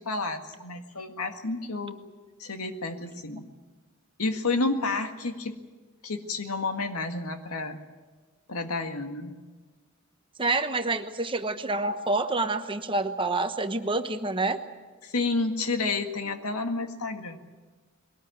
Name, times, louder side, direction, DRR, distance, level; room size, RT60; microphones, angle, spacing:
voice 1, 0.0-2.0 2.4-3.5 4.2-5.6 6.0-7.8 8.5-9.4 15.0-17.4, left 3 dB, 90° left, 6 dB, 1.9 m, -30 dB
voice 2, 10.4-14.6, right 3 dB, 25° right, 8 dB, 1.1 m, -27 dB
22.0 x 18.5 x 9.2 m, 1.3 s
head